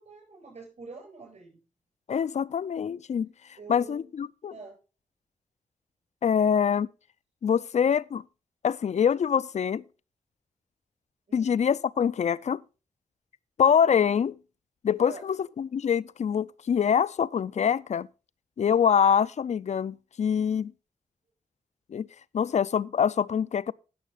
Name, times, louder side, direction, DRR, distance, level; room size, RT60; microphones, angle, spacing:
voice 1, 0.0-1.6 3.6-4.0 4.5-4.8 6.4-6.5 11.3-11.5 15.0-15.2, right 4 dB, 60° right, 7.6 m, -45 dB
voice 2, 2.1-3.3 3.7-4.5 6.2-6.9 7.4-8.2 8.6-9.8 11.3-12.6 13.6-14.4 14.8-18.1 18.6-20.7 21.9-22.1 22.3-23.7, left 7 dB, 55° left, 0.4 m, -25 dB
15.0 x 6.5 x 4.0 m
cardioid pair, 70°, 14 cm